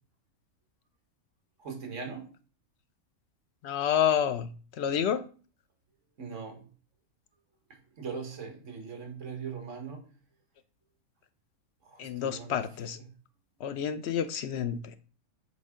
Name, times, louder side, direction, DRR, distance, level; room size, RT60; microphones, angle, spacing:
voice 1, 1.6-2.3 6.2-6.7 8.0-10.1 11.9-12.7 13.0-13.1, right 5 dB, 55° right, 1.8 m, -40 dB
voice 2, 3.6-4.5 4.8-5.2 12.0-13.0 13.6-14.8, left 9 dB, 60° left, 0.7 m, -28 dB
8.0 x 4.0 x 3.7 m
omnidirectional pair, 1.5 m